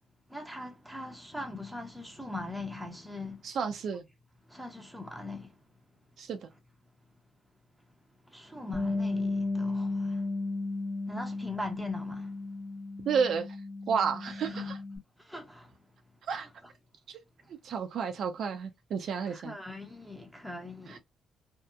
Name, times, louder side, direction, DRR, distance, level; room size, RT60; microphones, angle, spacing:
voice 1, 0.3-3.4 4.5-5.5 8.3-10.2 11.1-12.3 14.3-14.8 15.2-15.7 16.3-16.5 19.3-21.0, left 2 dB, ahead, 0.8 m, -40 dB
voice 2, 3.4-4.1 6.2-6.5 13.1-13.5 13.9-14.8 16.3-16.5 17.1-17.2 17.6-19.6 20.9-21.0, right 6 dB, 65° right, 0.5 m, -31 dB
Bass guitar, 8.7-15.0, left 3 dB, 30° left, 1.0 m, -34 dB
2.7 x 2.1 x 2.3 m
cardioid pair, 90°, 0 cm